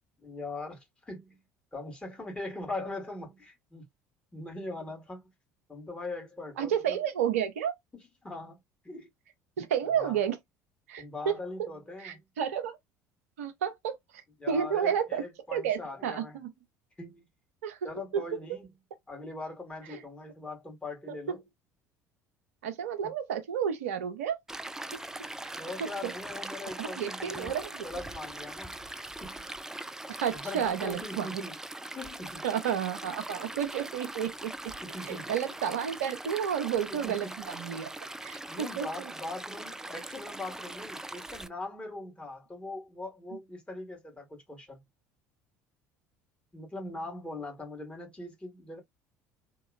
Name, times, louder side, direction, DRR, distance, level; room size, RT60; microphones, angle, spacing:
voice 1, 0.2-1.4 1.7-3.9 4.3-5.3 5.7-7.0 8.2-8.6 8.8-9.1 10.0-10.2 11.0-12.2 14.4-16.4 17.0-17.3 17.8-18.7 19.1-21.4 23.0-23.1 25.6-27.6 27.8-29.5 30.3-31.6 31.9-32.4 34.8-35.4 36.9-37.5 38.5-44.8 46.5-48.8, left 2 dB, 10° left, 1.6 m, -41 dB
voice 2, 6.6-7.7 9.6-10.4 10.9-11.4 12.0-12.8 13.4-14.0 14.5-15.2 15.5-16.5 17.6-17.8 18.1-18.2 19.9-20.0 21.1-21.2 22.6-24.4 25.4-25.6 26.0-26.1 26.8-27.8 30.1-31.4 32.4-34.5 35.1-37.9 38.2-39.1, right 8 dB, 65° right, 0.7 m, -31 dB
Stream, 24.5-41.5, right 1 dB, 5° right, 0.3 m, -41 dB
2.9 x 2.9 x 2.4 m
figure-of-eight pair, 60°, 8 cm